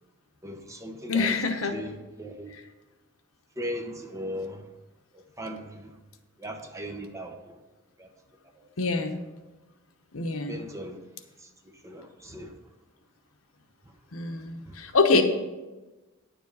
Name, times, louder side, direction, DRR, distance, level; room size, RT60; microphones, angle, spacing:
voice 1, 0.4-1.4 1.7-2.5 3.6-4.7 5.1-5.9 6.4-7.6 8.0-8.1 8.6-8.7 10.5-11.0 11.4-11.5 11.8-12.6 14.7-14.8, equal, 15° right, 4 dB, 0.9 m, -38 dB
voice 2, 1.1-1.8 8.8-9.2 10.1-10.6 14.1-15.2, left 3 dB, 80° left, 6 dB, 1.0 m, -25 dB
9.9 x 7.2 x 5.4 m, 1.1 s
head